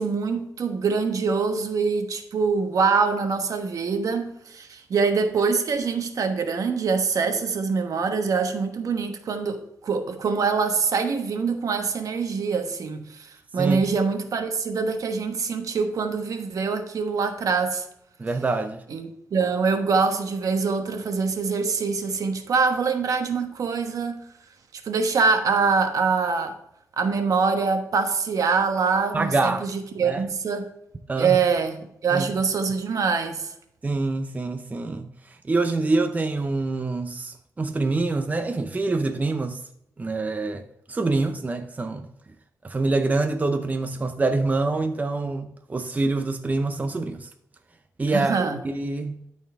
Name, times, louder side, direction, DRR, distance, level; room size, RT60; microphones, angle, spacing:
voice 1, 0.0-17.9 18.9-24.2 24.7-26.6 27.0-30.7 31.2-33.5 48.1-48.6, right 5 dB, 70° right, 1.1 m, -24 dB
voice 2, 18.2-18.8 29.1-29.7 30.0-30.2 31.1-31.4 32.1-32.2 33.8-35.1 35.5-39.6 40.0-40.6 40.9-42.1 42.6-47.3 48.0-49.2, right 3 dB, 25° right, 0.6 m, -25 dB
12.5 x 4.2 x 3.5 m
cardioid pair, 100°, 6 cm